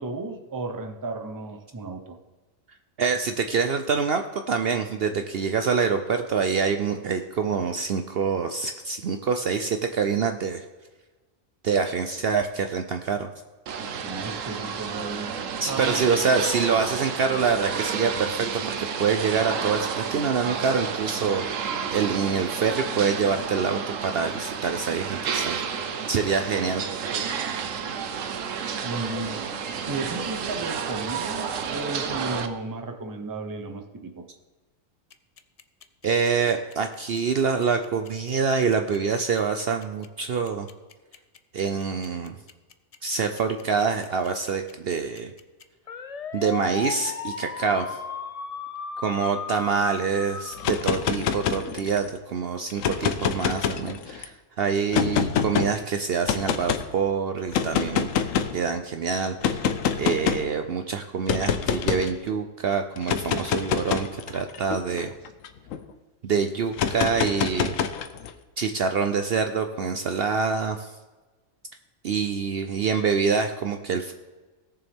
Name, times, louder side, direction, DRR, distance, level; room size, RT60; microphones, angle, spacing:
voice 1, 0.0-2.2 14.0-15.3 15.7-16.1 28.8-29.4 29.9-34.2, right 3 dB, 20° right, 6 dB, 0.6 m, -34 dB
voice 2, 3.0-10.6 11.6-13.3 15.6-25.6 26.1-26.8 36.0-40.7 41.5-42.3 43.0-45.3 46.3-48.0 49.0-58.1 58.5-59.6 60.0-65.1 66.2-67.7 68.6-70.9 72.0-74.1, right 5 dB, 60° right, 6 dB, 0.7 m, -26 dB
sound 1, 13.7-32.5, right 6 dB, 75° right, 1.2 m, -31 dB
sound 2, 35.1-51.6, left 6 dB, 55° left, 0.4 m, -36 dB
sound 3, 50.5-52.1 52.7-54.2 54.9-55.7 56.3-56.8 57.5-58.6 59.4-60.5 61.3-62.1 63.0-65.8 66.7-68.3, left 7 dB, 80° left, 1.1 m, -26 dB
17.5 x 6.9 x 3.5 m, 1.3 s
omnidirectional pair, 1.4 m